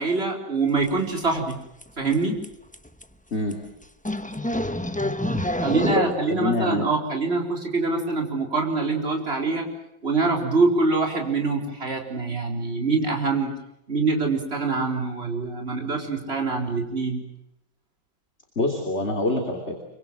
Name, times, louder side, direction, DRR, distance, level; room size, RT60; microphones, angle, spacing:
voice 1, 0.0-1.6 2.0-2.4 5.6-9.7 10.0-13.5 13.9-17.2, right 3 dB, 30° right, 2 dB, 4.4 m, -24 dB
sound 1, 0.9-1.0 1.2-1.5 1.8-1.9 2.1-2.2 2.4-2.5 2.7-3.0 3.5-3.6 4.1-6.0, left 1 dB, 10° left, 0.4 m, -26 dB
voice 2, 6.0-6.9 18.6-19.8, left 2 dB, 30° left, 2 dB, 3.3 m, -25 dB
26.0 x 24.5 x 7.6 m, 0.81 s
omnidirectional pair, 2.2 m